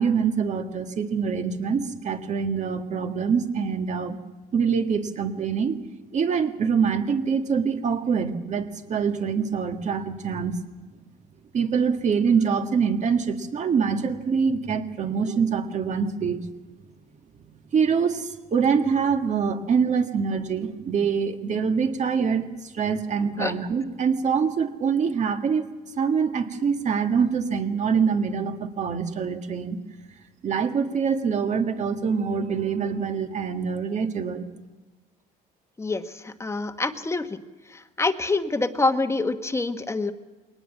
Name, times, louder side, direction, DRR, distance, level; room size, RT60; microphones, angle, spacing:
voice 1, 0.0-4.2 4.5-5.8 6.1-10.6 11.5-16.5 17.7-25.7 26.0-29.8 30.4-34.5, right 6 dB, 45° right, 7 dB, 1.9 m, -25 dB
voice 2, 35.8-37.4 37.7-40.1, left 3 dB, 15° left, 8 dB, 1.3 m, -26 dB
22.0 x 19.0 x 7.4 m, 1.2 s
cardioid pair, 110°, 17 cm